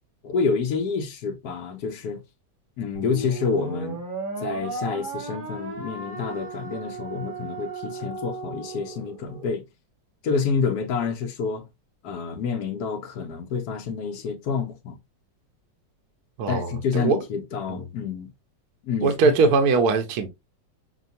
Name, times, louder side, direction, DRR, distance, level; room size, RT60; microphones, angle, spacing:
voice 1, 0.2-2.2 2.8-4.0 4.4-9.6 10.2-11.7 12.0-15.0 16.5-18.3 18.8-19.3, left 5 dB, 65° left, 1.1 m, -28 dB
sound 1, 2.9-9.5, right 3 dB, 35° right, 1.0 m, -35 dB
voice 2, 16.4-17.2 17.7-17.9 19.0-20.3, right 4 dB, 65° right, 1.2 m, -21 dB
6.0 x 2.2 x 2.7 m
omnidirectional pair, 2.0 m